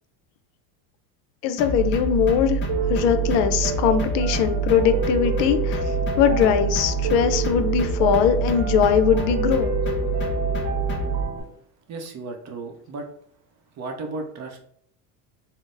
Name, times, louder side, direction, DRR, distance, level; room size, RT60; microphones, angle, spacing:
voice 1, 1.4-2.6 2.9-5.8 6.2-9.7, left 8 dB, 80° left, 9 dB, 0.5 m, -21 dB
sound 1, 1.6-11.2, right 3 dB, 25° left, 0.4 m, -26 dB
Piano, 2.7-11.4, right 3 dB, 65° right, 0.8 m, -29 dB
voice 2, 11.9-13.1 13.7-14.6, right 3 dB, 35° right, 3 dB, 0.6 m, -34 dB
3.7 x 2.0 x 2.5 m, 0.65 s
supercardioid pair, 100°, 49 cm